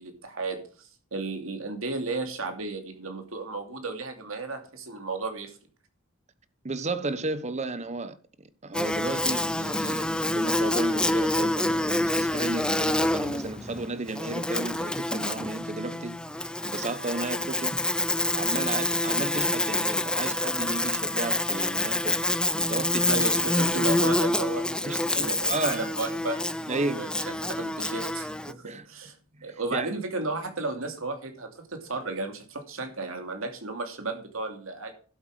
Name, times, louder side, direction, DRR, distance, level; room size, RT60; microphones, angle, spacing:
voice 1, 0.0-5.6 23.1-26.4 26.9-29.2 29.4-34.9, right 3 dB, 70° right, 2.7 m, -34 dB
voice 2, 6.6-17.8 18.3-22.2 22.5-23.3 24.9-25.9 26.7-27.0 28.6-28.9 29.4-29.9, right 2 dB, 30° right, 1.0 m, -33 dB
Buzz, 8.7-28.5, left 1 dB, 5° left, 0.5 m, -27 dB
12.0 x 7.9 x 4.8 m
head